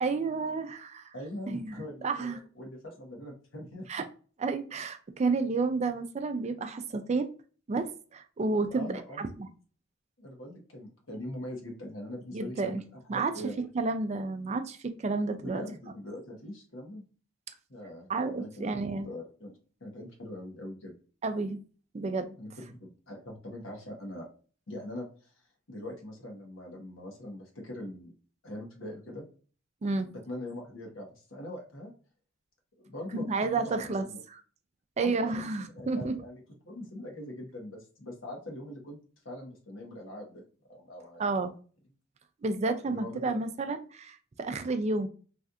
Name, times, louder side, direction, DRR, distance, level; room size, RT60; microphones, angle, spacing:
voice 1, 0.0-1.1 1.5-2.4 3.9-4.0 4.4-7.3 7.7-8.9 9.2-9.5 12.3-12.8 13.1-13.3 13.6-15.6 18.1-19.1 21.2-21.6 21.9-22.4 29.8-30.1 33.1-34.1 35.0-36.1 41.2-41.5 42.4-45.1, right 3 dB, 35° right, 8 dB, 0.4 m, -31 dB
voice 2, 1.1-3.9 8.7-9.2 10.2-12.8 13.1-13.6 15.4-17.0 17.7-18.7 19.0-19.5 19.8-20.9 22.4-24.3 24.7-25.3 25.7-28.1 28.4-29.2 30.1-31.9 32.8-34.2 35.0-35.5 35.7-39.0 39.2-40.4 40.7-41.2 42.9-43.4 44.9-45.0, left 1 dB, 75° left, 0 dB, 1.2 m, -42 dB
3.2 x 2.4 x 2.6 m, 0.39 s
head